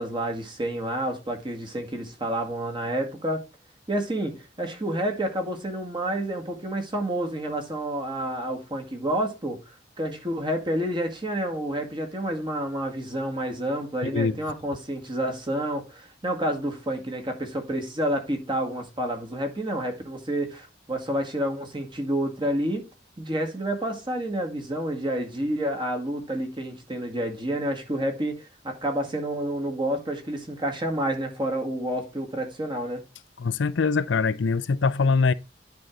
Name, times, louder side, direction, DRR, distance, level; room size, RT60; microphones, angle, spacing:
voice 1, 0.0-3.4 3.9-9.6 10.0-22.9 23.2-33.0, right 1 dB, 25° right, 1.9 m, -29 dB
voice 2, 14.0-14.3 33.4-35.3, left 4 dB, 85° left, 0.5 m, -23 dB
10.5 x 4.6 x 3.8 m
head